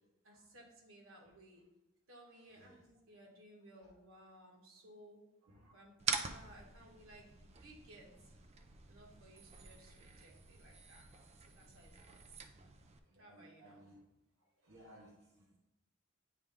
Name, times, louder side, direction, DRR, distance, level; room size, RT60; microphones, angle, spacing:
voice 1, 0.2-1.7 2.1-5.2 5.7-8.4 8.9-11.1 11.4-12.4 13.2-13.9, right 1 dB, 90° right, -1 dB, 1.6 m, -59 dB
sound 1, 6.0-13.0, right 5 dB, 30° right, 0.4 m, -45 dB
voice 2, 6.0-6.5 13.1-14.0 14.6-15.6, right 1 dB, 70° right, -4 dB, 1.1 m, -61 dB
9.2 x 3.3 x 3.5 m, 0.92 s
head